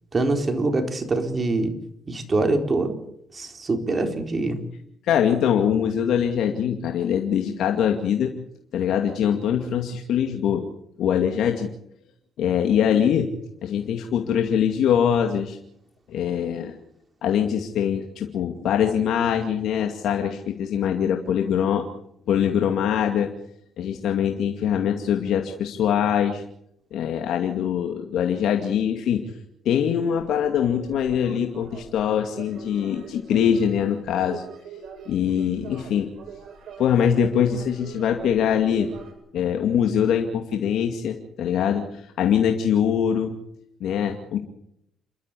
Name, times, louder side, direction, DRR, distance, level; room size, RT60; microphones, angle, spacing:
voice 1, 0.1-1.7 2.1-3.0 3.3-4.6, right 2 dB, 30° right, 5 dB, 4.2 m, -24 dB
voice 2, 5.0-8.3 8.7-10.6 11.0-11.7 12.4-13.3 13.6-15.6 16.1-16.8 17.2-21.8 22.3-23.3 23.8-26.4 26.9-29.2 29.7-34.4 35.1-36.1 36.8-38.9 39.3-43.3 43.8-44.4, left 8 dB, 80° left, 4 dB, 2.3 m, -23 dB
sound 1, 30.2-39.1, right 5 dB, 60° right, 7.6 m, -42 dB
29.0 x 12.5 x 8.4 m, 0.74 s
cardioid pair, 90°, 0 cm